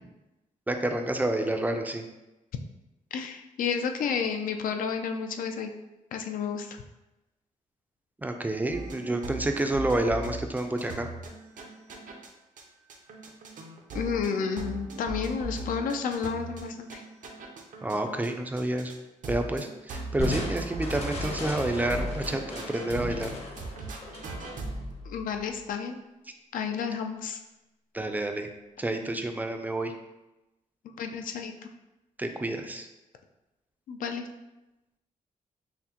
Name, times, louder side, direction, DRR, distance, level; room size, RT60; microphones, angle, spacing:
voice 1, 0.7-2.0 8.2-11.1 17.8-18.9 19.3-23.3 27.9-28.5 28.8-29.9 32.2-32.9, right 1 dB, 10° right, 5 dB, 0.3 m, -29 dB
voice 2, 3.1-5.7 6.1-6.8 13.9-17.0 25.1-26.0 26.5-27.4 31.0-31.6 33.9-34.3, left 6 dB, 80° left, 5 dB, 0.4 m, -31 dB
sound 1, 8.7-12.3 12.6-12.7 12.9-18.3 18.6-19.0 19.2-23.3 23.6-24.9, right 2 dB, 70° right, 0.6 m, -39 dB
Crushing, 20.2-25.6, left 2 dB, 45° left, 0.8 m, -36 dB
5.7 x 2.1 x 2.9 m, 0.99 s
cardioid pair, 115°, 14 cm